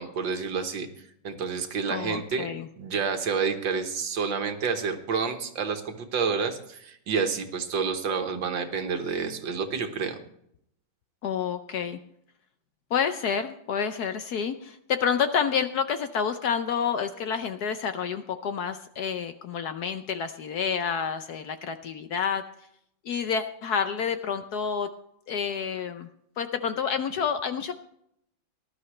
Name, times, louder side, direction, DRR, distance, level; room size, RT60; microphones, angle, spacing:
voice 1, 0.0-2.5 2.8-10.2, right 5 dB, 70° right, 6 dB, 2.0 m, -29 dB
voice 2, 1.9-2.7 11.2-12.0 12.9-22.4 23.0-24.9 25.3-26.1 26.4-27.7, left 7 dB, 65° left, 9 dB, 1.1 m, -29 dB
19.0 x 11.5 x 3.3 m, 0.74 s
omnidirectional pair, 2.1 m